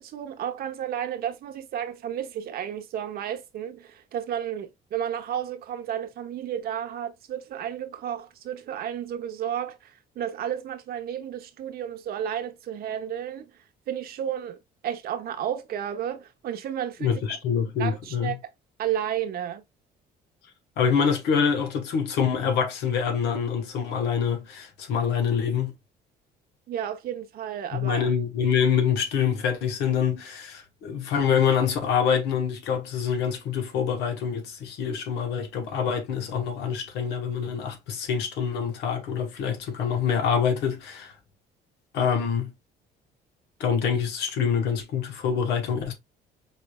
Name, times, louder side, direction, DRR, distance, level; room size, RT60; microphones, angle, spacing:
voice 1, 0.0-17.2 17.8-18.4 18.8-19.6 26.7-28.1, right 10 dB, 65° right, 0.9 m, -32 dB
voice 2, 17.0-18.3 20.8-25.7 27.7-41.1 41.9-42.5 43.6-45.9, left 7 dB, 80° left, 1.3 m, -25 dB
5.0 x 3.3 x 2.3 m
cardioid pair, 110°, 17 cm